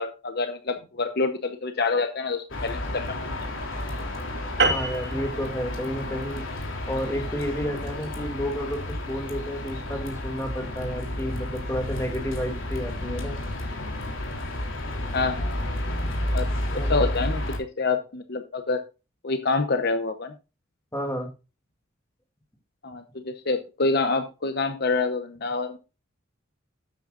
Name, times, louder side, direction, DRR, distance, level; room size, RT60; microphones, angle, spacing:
voice 1, 0.0-3.1 15.1-15.6 16.3-18.8 19.2-20.3 22.8-25.8, left 3 dB, 55° left, 8 dB, 0.9 m, -27 dB
sound 1, 2.5-17.6, left 1 dB, 80° left, 3.5 m, -31 dB
sound 2, 4.6-9.3, right 3 dB, 60° right, 3.2 m, -30 dB
voice 2, 4.7-6.5 6.9-13.4 16.7-17.1 20.9-21.3, equal, 15° left, 3 dB, 2.7 m, -31 dB
12.5 x 9.0 x 2.5 m, 0.30 s
head